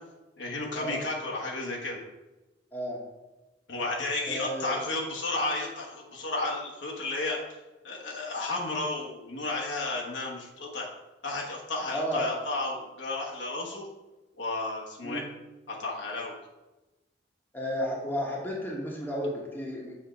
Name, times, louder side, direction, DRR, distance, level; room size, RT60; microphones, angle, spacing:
voice 1, 0.4-2.0 3.7-7.6 7.8-10.9 11.2-13.9 14.4-15.2 15.7-16.4, left 2 dB, 75° left, -2 dB, 1.3 m, -32 dB
voice 2, 4.3-4.7 11.9-12.3 15.0-15.3 17.5-20.0, equal, 10° left, -3 dB, 1.1 m, -32 dB
7.0 x 3.6 x 5.1 m, 1.1 s
head